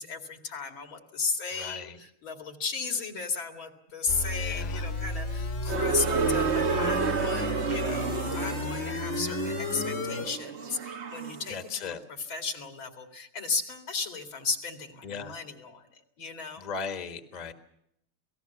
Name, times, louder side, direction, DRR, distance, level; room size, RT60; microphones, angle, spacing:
voice 1, 0.0-16.7, left 5 dB, 70° left, 5 dB, 3.2 m, -35 dB
voice 2, 1.6-2.0 4.3-4.9 11.5-12.0 15.0-15.3 16.6-17.5, left 6 dB, 25° left, 7 dB, 1.4 m, -37 dB
sound 1, 4.1-10.3, left 3 dB, 40° left, 1.6 m, -33 dB
sound 2, 5.7-11.6, right 5 dB, 45° right, 1.0 m, -30 dB
28.0 x 18.5 x 6.9 m, 0.77 s
omnidirectional pair, 2.3 m